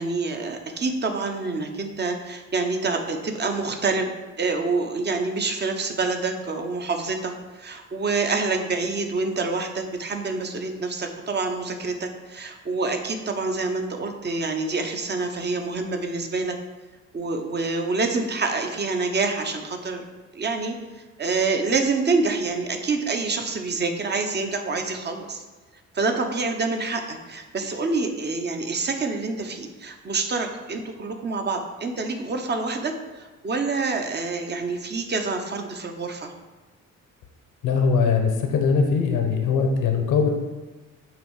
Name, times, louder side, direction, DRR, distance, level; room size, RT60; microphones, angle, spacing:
voice 1, 0.0-16.6 17.1-20.0 20.3-25.4 25.9-36.3, right 3 dB, 35° right, 4 dB, 1.1 m, -27 dB
voice 2, 37.6-40.3, left 5 dB, 90° left, 3 dB, 1.1 m, -21 dB
9.2 x 3.2 x 6.4 m, 1.2 s
cardioid pair, 90°, 30 cm